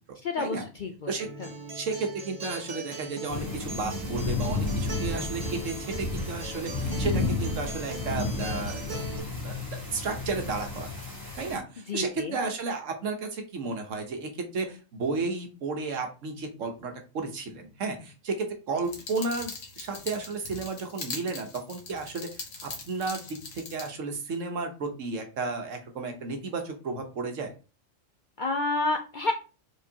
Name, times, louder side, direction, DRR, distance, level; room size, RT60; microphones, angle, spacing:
voice 1, 0.2-1.2 11.9-12.4 28.4-29.3, left 3 dB, 60° left, 4 dB, 0.5 m, -29 dB
Acoustic guitar, 1.2-9.2, right 2 dB, 40° right, 0.9 m, -40 dB
voice 2, 1.7-9.0 9.3-10.9 11.4-22.3 22.6-23.2 23.5-27.5, right 4 dB, 75° right, 4 dB, 1.3 m, -33 dB
sound 1, 3.3-11.6, left 3 dB, 15° left, 2.7 m, -32 dB
sound 2, 18.8-23.9, left 4 dB, 90° left, 1.5 m, -41 dB
4.8 x 3.8 x 2.8 m, 0.34 s
omnidirectional pair, 1.3 m